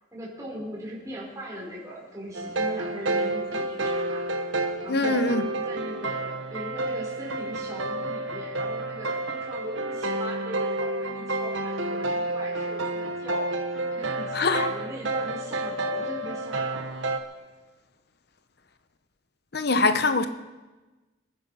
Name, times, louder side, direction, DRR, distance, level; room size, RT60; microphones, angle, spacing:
voice 1, 0.1-4.3 4.8-5.2 5.6-13.5 13.9-17.0, right 1 dB, 15° right, 4.4 m, -39 dB
sound 1, 2.3-17.2, right 2 dB, 75° right, 1.2 m, -30 dB
voice 2, 4.9-5.5 14.3-14.7 19.5-20.3, left 3 dB, 55° left, 0.9 m, -23 dB
25.5 x 9.3 x 5.5 m
head